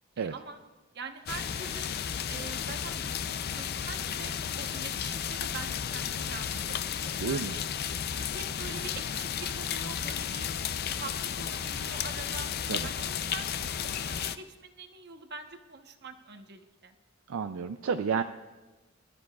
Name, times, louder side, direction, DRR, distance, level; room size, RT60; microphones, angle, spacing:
voice 1, 0.2-0.6 0.9-1.9 2.3-7.6 8.2-10.5 10.8-12.5 12.8-13.5 13.8-17.0, right 4 dB, 50° right, 6 dB, 1.0 m, -44 dB
Autumn forest - leaves falling near pond I (loopable), 1.3-14.4, left 8 dB, 45° left, 0.4 m, -33 dB
voice 2, 7.2-7.6 12.7-12.9 17.3-18.2, right 6 dB, 70° right, 8 dB, 0.4 m, -31 dB
22.5 x 13.0 x 2.4 m, 1.2 s
head